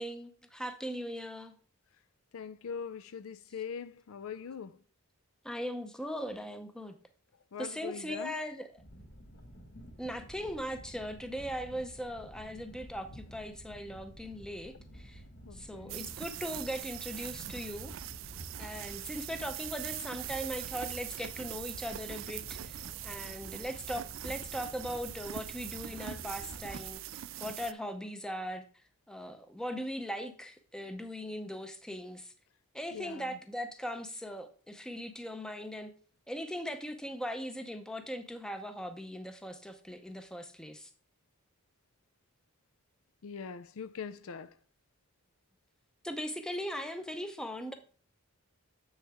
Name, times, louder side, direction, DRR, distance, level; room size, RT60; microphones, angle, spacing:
voice 1, 0.0-1.5 5.4-7.0 7.6-8.8 10.0-15.2 15.5-17.9 18.6-28.7 29.1-32.3 32.7-35.9 36.3-40.9 46.0-47.7, equal, 5° left, 0.6 m, -39 dB
voice 2, 2.3-4.8 7.5-8.4 15.5-16.0 32.9-33.4 43.2-44.5, left 6 dB, 70° left, 0.4 m, -42 dB
sound 1, 8.8-26.9, equal, 55° left, 1.3 m, -50 dB
sound 2, 15.9-27.7, right 13 dB, 60° right, 0.3 m, -42 dB
7.7 x 6.4 x 3.5 m
head